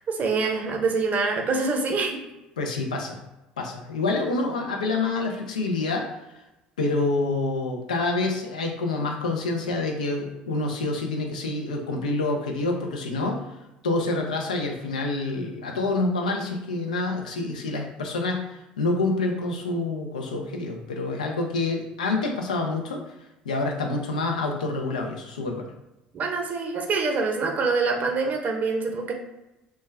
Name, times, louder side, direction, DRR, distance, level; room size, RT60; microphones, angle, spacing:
voice 1, 0.0-2.2 26.1-29.1, right 4 dB, 40° right, 2 dB, 0.6 m, -25 dB
voice 2, 2.6-3.2 3.6-6.1 6.8-13.4 13.8-23.0 23.5-25.6, left 3 dB, 85° left, 2 dB, 0.4 m, -27 dB
2.2 x 2.1 x 3.2 m, 0.97 s
hypercardioid pair, 65°, 4 cm